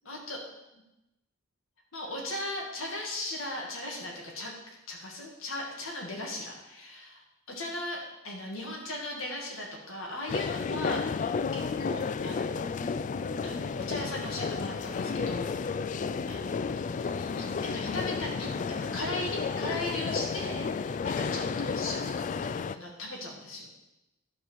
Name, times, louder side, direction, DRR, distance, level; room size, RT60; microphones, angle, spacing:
voice 1, 0.0-0.4 1.9-4.5 4.9-7.2 7.5-13.0 13.4-15.8 16.3-16.6 17.0-23.7, left 1 dB, 75° left, -1 dB, 2.2 m, -38 dB
sound 1, 10.3-22.8, left 5 dB, 35° left, 0.3 m, -32 dB
11.5 x 4.7 x 7.1 m, 0.94 s
head